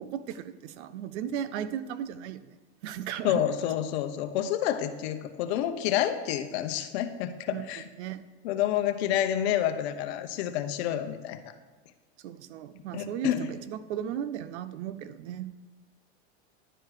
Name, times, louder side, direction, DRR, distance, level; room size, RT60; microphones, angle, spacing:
voice 1, 0.0-2.4 2.8-3.4 7.5-7.6 8.0-8.2 12.2-15.5, right 9 dB, 75° right, 14 dB, 0.7 m, -36 dB
voice 2, 3.2-7.9 8.4-11.5 12.9-13.5, left 11 dB, 70° left, 9 dB, 0.9 m, -29 dB
11.0 x 4.6 x 4.8 m, 1.3 s
supercardioid pair, 130°, 34 cm